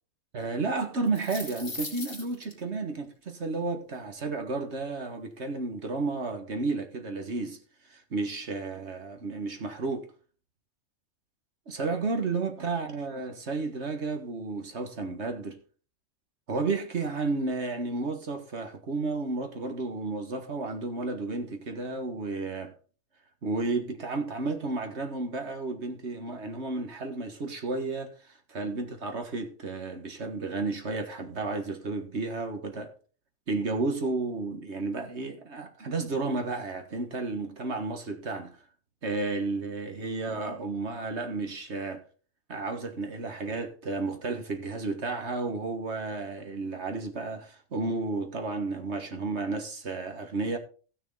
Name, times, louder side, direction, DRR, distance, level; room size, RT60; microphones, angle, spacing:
voice 1, 0.3-7.6 7.9-10.1 11.7-15.6 16.5-22.7 23.4-28.1 28.5-32.9 33.5-38.6 39.0-42.0 42.5-50.6, right 3 dB, 50° right, 1.8 m, -32 dB
sound 1, 0.9-2.5, left 2 dB, 50° left, 3.0 m, -38 dB
15.5 x 6.4 x 4.0 m
omnidirectional pair, 1.5 m